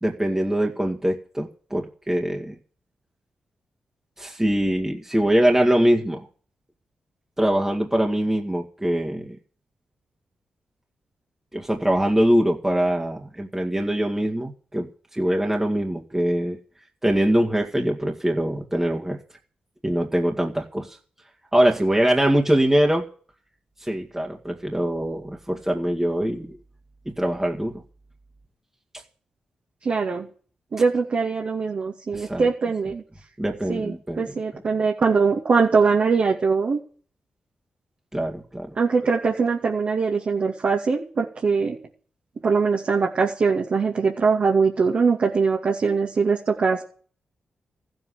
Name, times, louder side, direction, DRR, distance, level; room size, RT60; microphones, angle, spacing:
voice 1, 0.0-2.5 4.2-6.3 7.4-9.4 11.5-16.6 17.0-19.2 19.8-21.0 21.5-23.0 23.8-26.6 27.1-27.8 32.1-32.5 33.4-34.2 38.1-38.7, right 1 dB, 15° right, 1 dB, 2.2 m, -23 dB
voice 2, 29.8-30.3 30.7-33.0 33.7-36.8 38.8-41.8 42.4-46.8, right 5 dB, 60° right, -1 dB, 2.4 m, -22 dB
14.5 x 7.9 x 10.0 m, 0.43 s
supercardioid pair, 45°, 3 cm